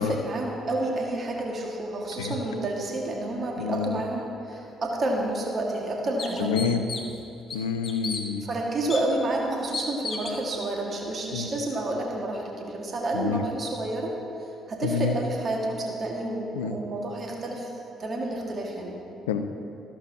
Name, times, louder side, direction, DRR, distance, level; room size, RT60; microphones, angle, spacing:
voice 1, 0.0-6.7 8.4-14.2 14.7-17.7 18.0-19.0, right 2 dB, 45° right, 0 dB, 1.7 m, -29 dB
voice 2, 3.6-4.0 6.4-6.8 7.5-8.4 11.3-11.5 13.1-13.4 14.8-15.1 16.5-16.8 19.3-19.4, left 7 dB, 80° left, 8 dB, 0.5 m, -27 dB
sound 1, 5.1-5.2 5.8-5.9 6.2-7.2 7.5-8.2 8.9-9.0 9.7-10.4, left 4 dB, 45° left, 1.2 m, -33 dB
14.0 x 13.0 x 2.8 m, 2.8 s
figure-of-eight pair, 45°, 0 cm